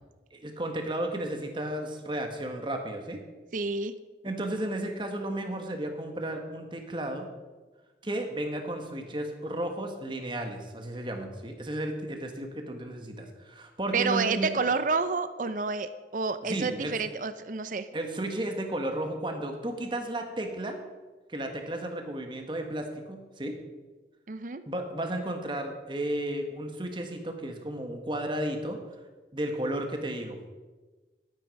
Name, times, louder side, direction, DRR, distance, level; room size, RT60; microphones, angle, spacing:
voice 1, 0.3-3.2 4.2-7.3 8.0-14.5 16.4-16.9 17.9-20.8 21.3-23.5 24.7-28.8 29.3-30.4, right 1 dB, 25° right, 4 dB, 1.3 m, -33 dB
voice 2, 3.5-3.9 13.9-17.9 24.3-24.6, right 4 dB, 45° right, 11 dB, 0.5 m, -29 dB
12.0 x 9.2 x 5.3 m, 1.3 s
head